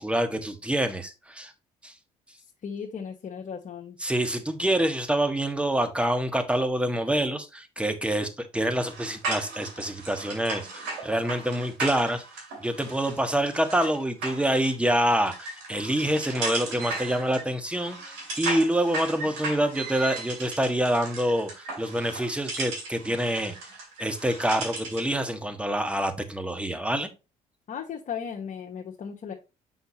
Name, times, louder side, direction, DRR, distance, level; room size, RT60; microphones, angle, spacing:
voice 1, 0.0-1.5 1.8-1.9 4.0-12.2 12.6-23.5 24.0-27.1, right 1 dB, 5° right, 1.4 m, -26 dB
voice 2, 2.6-4.0 27.7-29.3, left 7 dB, 50° left, 1.1 m, -36 dB
sound 1, 8.7-25.1, right 3 dB, 80° right, 2.6 m, -36 dB
6.9 x 5.8 x 2.8 m
hypercardioid pair, 60°, 17 cm